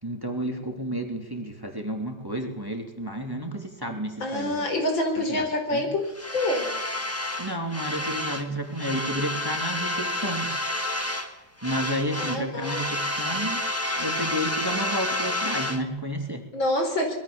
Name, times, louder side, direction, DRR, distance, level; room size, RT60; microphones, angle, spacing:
voice 1, 0.0-4.7 5.3-5.9 7.4-10.5 11.6-13.6 14.0-16.4, right 1 dB, 10° right, 3 dB, 3.2 m, -31 dB
voice 2, 4.2-6.1 6.3-6.7 12.2-12.8 16.5-17.1, left 1 dB, 70° left, 4 dB, 5.2 m, -26 dB
sound 1, 6.1-8.5 8.7-11.3 11.6-15.8, left 1 dB, 10° left, 1.4 m, -30 dB
25.5 x 21.5 x 7.2 m, 0.87 s
omnidirectional pair, 2.2 m